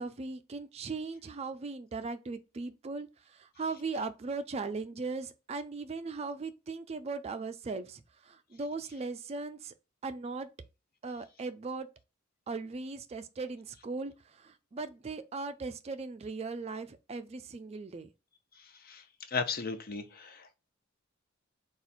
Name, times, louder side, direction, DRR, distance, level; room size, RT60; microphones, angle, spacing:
voice 1, 0.0-9.7 10.0-10.5 11.0-11.9 12.5-18.1, right 4 dB, 30° right, 0.3 m, -38 dB
voice 2, 19.3-20.6, left 5 dB, 45° left, 0.6 m, -35 dB
4.1 x 2.4 x 4.2 m
head